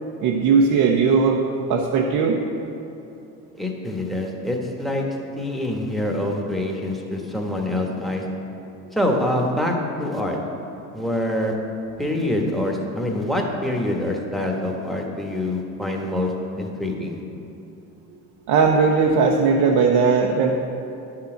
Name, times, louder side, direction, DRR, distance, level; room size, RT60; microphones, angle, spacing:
voice 1, 0.2-1.4 1.7-2.4 18.5-20.5, right 5 dB, 60° right, 1 dB, 0.8 m, -18 dB
voice 2, 3.5-5.0 5.4-8.2 8.9-9.7 10.0-10.4 10.9-11.5 12.0-17.2, left 1 dB, ahead, 0 dB, 1.4 m, -25 dB
11.0 x 5.8 x 3.9 m, 2.8 s
hypercardioid pair, 65°, 43 cm